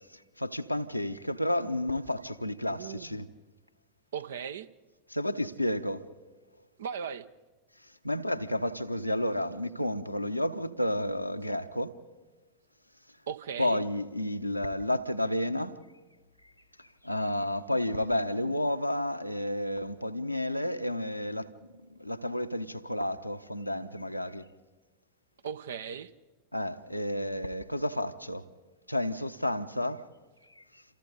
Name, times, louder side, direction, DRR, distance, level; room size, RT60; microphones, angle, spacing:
voice 1, 0.1-3.3 5.1-6.0 8.0-12.0 13.6-15.8 16.8-21.5 22.0-24.5 26.5-28.4 28.9-30.0 30.6-30.8, left 1 dB, 90° left, 0.9 m, -31 dB
voice 2, 2.7-3.2 4.1-4.7 6.8-7.3 13.3-13.8 25.4-26.1, right 7 dB, 65° right, 0.8 m, -37 dB
28.0 x 27.5 x 4.0 m
figure-of-eight pair, 90°, 0 cm